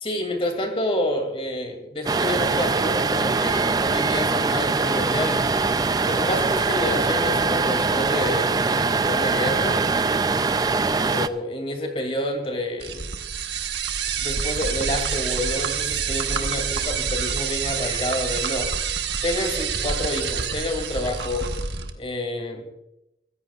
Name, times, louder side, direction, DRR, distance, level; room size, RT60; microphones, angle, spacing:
voice 1, 0.0-5.4 6.1-9.9 11.1-13.1 14.2-18.7 19.2-21.5 22.0-22.7, left 1 dB, 30° left, 5 dB, 2.5 m, -28 dB
sound 1, 2.1-11.3, right 4 dB, 20° right, 0.4 m, -22 dB
sound 2, 12.8-21.9, right 6 dB, 70° right, 1.2 m, -27 dB
22.5 x 15.0 x 2.4 m, 0.85 s
head